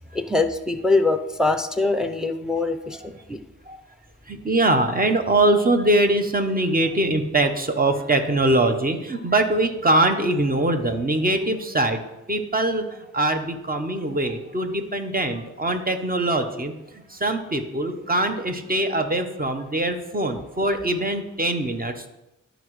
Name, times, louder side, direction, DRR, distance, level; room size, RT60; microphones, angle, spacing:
voice 1, 0.1-3.4, left 3 dB, ahead, 7 dB, 0.6 m, -23 dB
voice 2, 4.3-12.0 12.3-12.8 13.1-16.7 17.1-22.0, right 2 dB, 30° right, 6 dB, 1.0 m, -22 dB
12.0 x 5.0 x 3.2 m, 0.95 s
cardioid pair, 65°, 32 cm